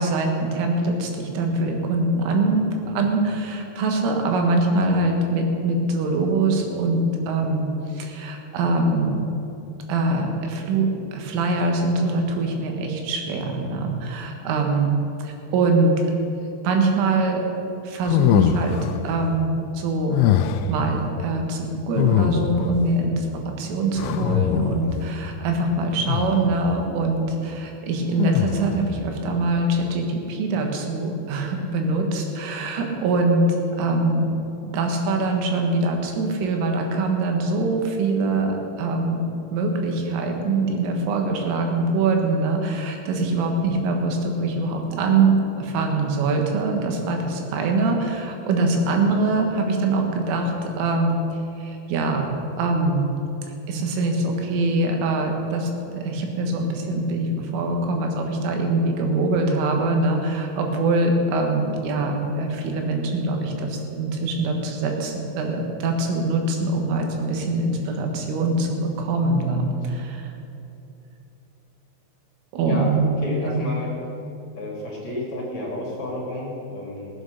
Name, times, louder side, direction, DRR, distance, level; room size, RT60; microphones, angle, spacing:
voice 1, 0.0-9.3 9.9-14.9 15.2-16.1 16.6-17.4 17.8-18.8 19.0-20.2 20.7-34.3 34.6-39.2 39.5-51.2 51.6-53.1 53.7-70.3 72.5-73.1 73.4-73.6, right 2 dB, 90° right, 2 dB, 4.1 m, -23 dB
sound 1, 18.0-19.0 20.1-20.8 22.0-22.8 24.0-25.0 26.1-26.6 28.2-28.9, left 10 dB, 85° left, 2.9 m, -22 dB
voice 2, 73.2-73.9 74.5-77.1, left 1 dB, 45° left, -3 dB, 2.7 m, -31 dB
18.0 x 8.1 x 6.5 m, 2.9 s
omnidirectional pair, 5.6 m